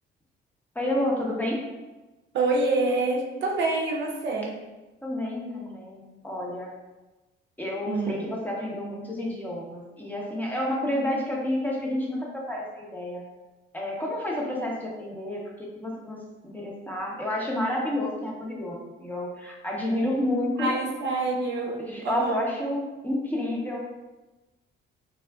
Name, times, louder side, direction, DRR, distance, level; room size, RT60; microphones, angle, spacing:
voice 1, 0.7-1.6 5.0-6.7 7.6-13.2 13.7-20.7 21.8-23.8, left 1 dB, 10° left, -3 dB, 0.7 m, -30 dB
voice 2, 2.3-4.6 7.9-8.2 20.6-22.4, right 3 dB, 65° right, 0 dB, 0.5 m, -26 dB
3.3 x 2.4 x 2.3 m, 1.1 s
cardioid pair, 90°, 20 cm